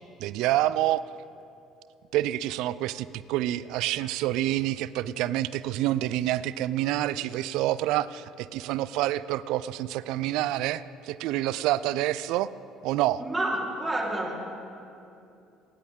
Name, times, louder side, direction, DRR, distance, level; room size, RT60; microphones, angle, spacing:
voice 1, 0.2-1.0 2.1-12.5 12.8-13.2, right 14 dB, 70° right, 17 dB, 0.4 m, -27 dB
voice 2, 13.2-14.4, right 1 dB, 20° right, -2 dB, 3.9 m, -29 dB
28.0 x 10.5 x 3.7 m, 2.7 s
hypercardioid pair, 60°, 0 cm